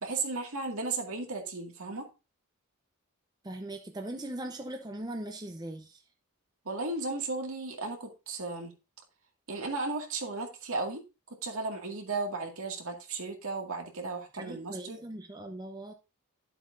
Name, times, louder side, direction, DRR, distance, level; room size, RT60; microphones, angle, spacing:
voice 1, 0.0-2.1 6.7-8.7 9.5-11.0 11.4-15.0, right 3 dB, 65° right, 2 dB, 2.1 m, -35 dB
voice 2, 3.4-6.0 14.3-15.9, right 1 dB, 20° right, 4 dB, 0.7 m, -40 dB
12.0 x 7.8 x 2.6 m, 0.28 s
head